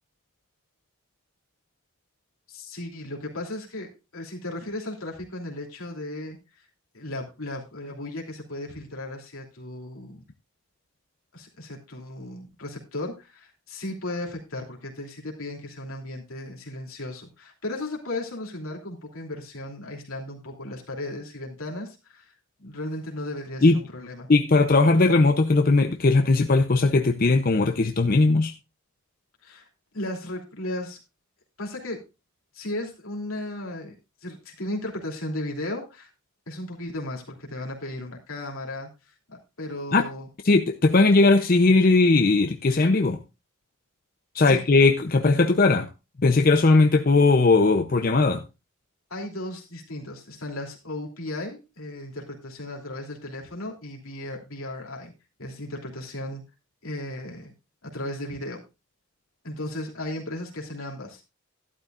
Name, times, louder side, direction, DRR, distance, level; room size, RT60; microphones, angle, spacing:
voice 1, 2.5-6.4 6.9-10.2 11.3-22.3 22.6-24.3 29.4-29.7 29.9-31.0 31.6-32.0 32.5-33.9 34.2-36.1 36.5-39.1 39.6-40.3 44.4-44.7 49.1-55.1 55.4-56.4 56.8-57.5 57.8-58.6 59.4-61.2, left 1 dB, 80° left, 3.0 m, -35 dB
voice 2, 24.3-28.5 39.9-40.0 40.4-43.2 44.3-45.9 46.2-48.4, left 3 dB, 40° left, 0.6 m, -19 dB
12.0 x 11.5 x 2.4 m
head